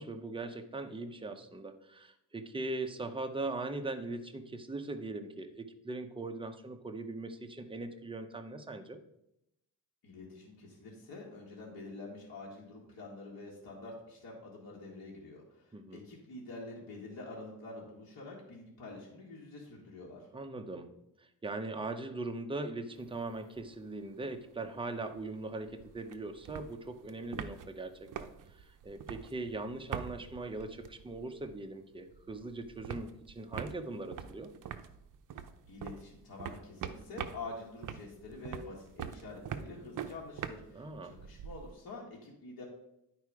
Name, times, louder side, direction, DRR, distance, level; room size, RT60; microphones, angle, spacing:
voice 1, 0.0-9.0 15.7-16.0 20.3-34.5 40.7-41.2, right 2 dB, 15° right, 6 dB, 0.7 m, -40 dB
voice 2, 10.0-20.3 35.7-42.6, left 2 dB, 75° left, -4 dB, 1.9 m, -47 dB
sound 1, 23.0-23.7 24.0-24.1 24.3-31.7 32.0-41.7, right 8 dB, 60° right, 0.6 m, -44 dB
10.5 x 4.6 x 4.8 m, 0.82 s
cardioid pair, 120°, 36 cm